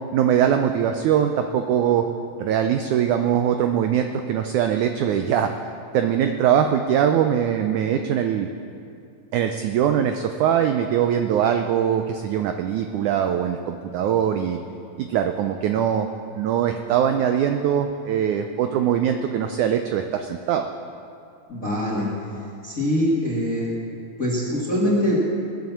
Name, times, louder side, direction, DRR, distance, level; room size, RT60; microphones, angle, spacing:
voice 1, 0.1-2.0 2.4-5.5 5.9-8.5 9.3-14.6 15.0-16.1 16.3-20.7, right 9 dB, 85° right, 6 dB, 1.7 m, -22 dB
voice 2, 21.5-22.1 22.4-23.7 24.2-25.3, equal, 25° left, -6 dB, 2.2 m, -23 dB
20.5 x 7.8 x 7.2 m, 2.5 s
omnidirectional pair, 4.3 m